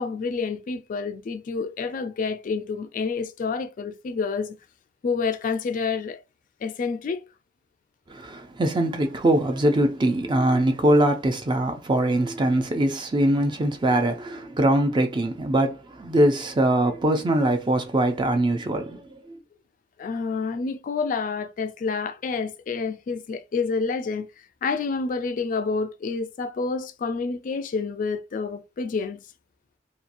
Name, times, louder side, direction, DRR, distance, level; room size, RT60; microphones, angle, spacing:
voice 1, 0.0-4.6 5.0-6.2 6.6-7.2 20.0-29.2, left 4 dB, 45° left, 0.3 m, -28 dB
voice 2, 8.1-19.4, right 1 dB, 25° right, 0.4 m, -22 dB
2.8 x 2.3 x 2.5 m
head